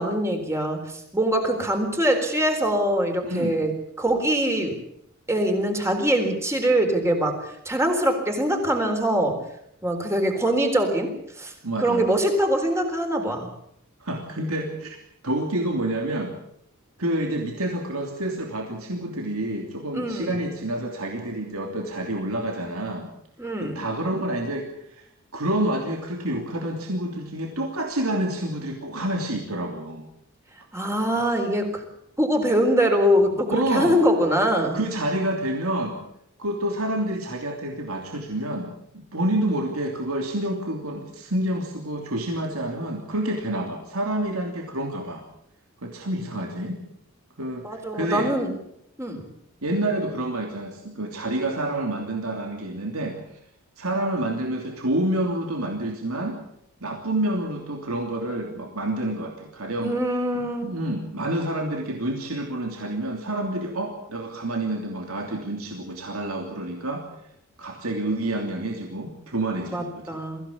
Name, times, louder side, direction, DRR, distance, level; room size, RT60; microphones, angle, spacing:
voice 1, 0.0-4.7 5.3-9.4 9.8-11.5 11.8-13.5 19.9-20.4 23.4-23.8 30.7-31.9 32.2-34.8 47.6-48.5 49.0-49.3 59.8-60.7 69.7-70.4, right 1 dB, 15° right, 4 dB, 4.0 m, -23 dB
voice 2, 3.2-3.6 11.6-12.1 14.0-15.0 15.2-16.3 17.0-23.1 23.6-25.1 25.3-30.0 31.1-31.4 33.5-34.0 34.7-36.0 36.4-38.7 39.1-45.2 45.8-46.8 47.4-48.3 49.6-53.2 53.8-56.4 56.8-59.9 60.3-67.1 67.6-70.2, right 1 dB, 85° right, 2 dB, 3.0 m, -28 dB
23.0 x 16.0 x 8.6 m, 0.76 s
head